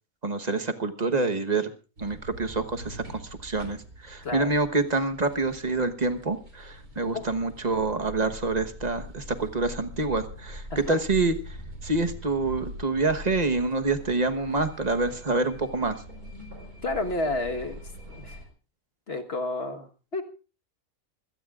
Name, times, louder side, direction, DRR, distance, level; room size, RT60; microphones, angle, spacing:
voice 1, 0.2-1.7 2.0-11.6 11.8-16.0, right 3 dB, 30° right, 7 dB, 1.1 m, -27 dB
sound 1, 2.0-18.5, equal, 70° right, 4.8 m, -43 dB
voice 2, 4.2-4.6 7.1-7.2 10.7-10.9 16.8-17.8 18.2-18.4 19.1-20.2, left 2 dB, 40° left, 5 dB, 1.5 m, -31 dB
24.5 x 17.5 x 2.4 m, 0.33 s
omnidirectional pair, 1.6 m